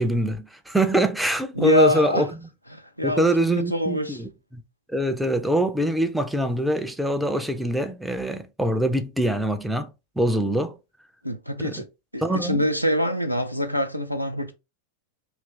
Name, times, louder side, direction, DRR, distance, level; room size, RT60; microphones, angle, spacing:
voice 1, 0.0-2.5 3.0-4.6 4.9-9.9 10.2-10.8 11.6-11.8 12.2-12.6, right 1 dB, ahead, 0.4 m, -24 dB
voice 2, 1.6-2.2 2.7-3.2 3.7-4.2 11.2-11.8 12.1-14.5, left 1 dB, 90° left, 0.4 m, -24 dB
2.9 x 2.5 x 3.2 m
figure-of-eight pair, 90°, 0 cm